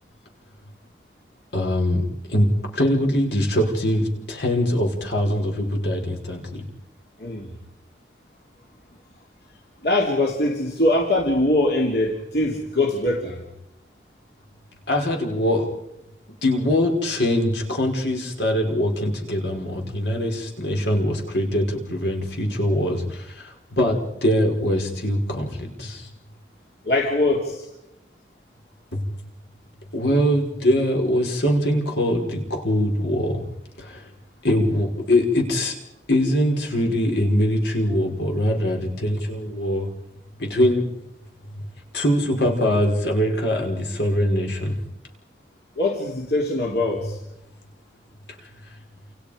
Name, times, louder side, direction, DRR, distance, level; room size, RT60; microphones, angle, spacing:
voice 1, 1.5-2.5 2.7-6.6 14.9-15.7 16.4-26.1 28.9-29.0 29.9-33.4 33.8-34.1 34.4-35.7 36.1-39.9 40.4-40.8 41.9-44.8, equal, 75° left, 1 dB, 5.4 m, -22 dB
voice 2, 9.8-13.4 26.8-27.6 45.8-47.2, left 1 dB, 60° left, -1 dB, 3.3 m, -22 dB
29.5 x 28.5 x 5.2 m, 0.87 s
head